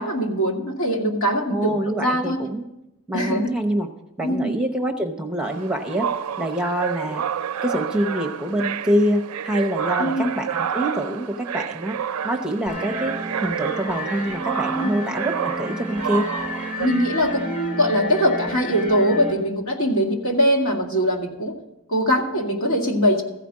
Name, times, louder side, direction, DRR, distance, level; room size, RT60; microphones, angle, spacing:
voice 1, 0.0-2.5 3.1-3.5 4.2-4.5 10.0-10.3 14.7-15.0 16.8-21.5 21.9-23.2, equal, 85° left, 0 dB, 2.0 m, -22 dB
voice 2, 1.5-2.7 3.1-3.9 4.2-6.1 6.4-7.2 7.6-12.0 12.2-16.3, equal, 5° right, 2 dB, 0.8 m, -25 dB
sound 1, 5.4-16.9, right 8 dB, 85° right, 0.4 m, -29 dB
sound 2, 12.7-19.3, left 1 dB, 35° left, 2.6 m, -32 dB
15.0 x 5.0 x 8.5 m, 0.91 s
head